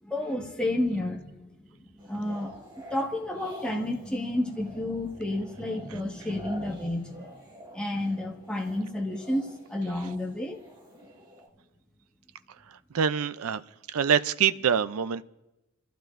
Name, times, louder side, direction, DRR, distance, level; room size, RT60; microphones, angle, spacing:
voice 1, 0.0-2.5 2.9-7.3 7.7-10.6, left 1 dB, 5° left, 1.5 m, -31 dB
sound 1, 2.0-11.5, equal, 20° right, 2.9 m, -48 dB
voice 2, 12.9-13.6 13.9-15.2, right 7 dB, 85° right, 0.5 m, -25 dB
28.5 x 15.0 x 2.6 m
head